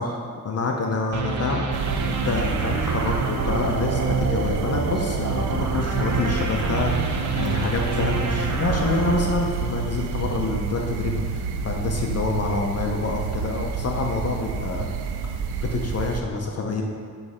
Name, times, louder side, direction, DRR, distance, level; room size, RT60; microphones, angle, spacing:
voice 1, 0.0-1.6 2.1-14.9 15.6-16.8, left 3 dB, 40° left, 1 dB, 0.6 m, -27 dB
sound 1, 1.1-10.2, right 4 dB, 50° right, 0.7 m, -28 dB
sound 2, 1.7-16.2, right 5 dB, 90° right, 0.5 m, -29 dB
6.9 x 3.2 x 4.9 m, 2.2 s
cardioid pair, 95°, 38 cm